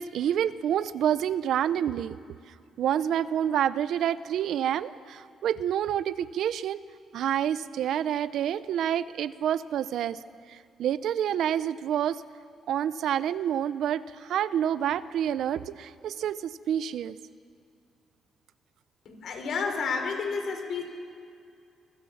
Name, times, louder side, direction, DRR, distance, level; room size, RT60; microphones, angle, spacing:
voice 1, 0.0-2.2 2.8-6.8 7.1-10.2 10.5-12.2 12.7-17.2, right 10 dB, 75° right, 15 dB, 0.7 m, -28 dB
voice 2, 19.0-20.8, left 5 dB, 65° left, 5 dB, 4.0 m, -30 dB
24.0 x 17.0 x 7.3 m, 2.3 s
cardioid pair, 90°, 0 cm